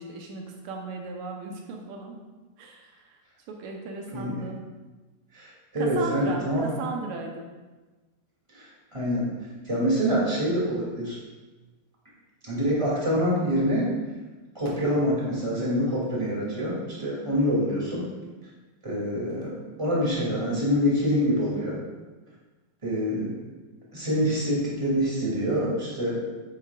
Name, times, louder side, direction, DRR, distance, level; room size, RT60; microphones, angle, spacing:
voice 1, 0.0-2.2 2.6-3.1 3.5-4.6 5.8-7.5, right 3 dB, 70° right, 1 dB, 1.9 m, -35 dB
voice 2, 5.3-6.7 8.5-9.2 9.6-11.2 12.4-13.9 14.5-18.1 18.8-21.8 22.8-23.3 23.9-26.2, equal, 10° right, -6 dB, 2.0 m, -26 dB
10.0 x 8.6 x 2.4 m, 1.2 s
omnidirectional pair, 4.0 m